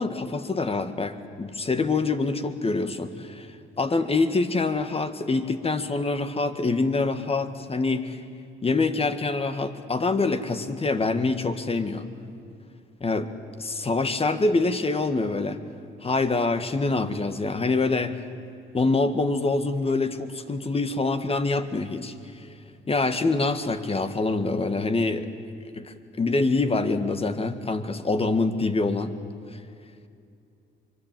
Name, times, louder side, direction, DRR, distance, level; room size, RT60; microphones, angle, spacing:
voice 1, 0.0-3.5 3.8-8.2 8.6-12.1 13.0-13.3 13.6-15.6 16.0-18.2 18.7-22.1 22.9-25.3 25.7-29.1, left 3 dB, 30° left, 9 dB, 1.9 m, -25 dB
24.5 x 23.0 x 9.3 m, 2.6 s
cardioid pair, 90°, 20 cm